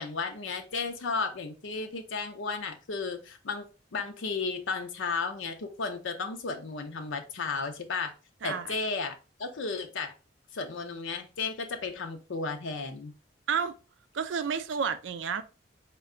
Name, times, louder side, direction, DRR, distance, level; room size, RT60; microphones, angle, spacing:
voice 1, 0.0-8.1 8.4-10.1 10.5-13.1, left 4 dB, 85° left, 0.6 m, -34 dB
voice 2, 8.4-8.8 13.5-13.7 14.1-15.4, right 6 dB, 75° right, 0.4 m, -30 dB
4.4 x 2.2 x 3.7 m
head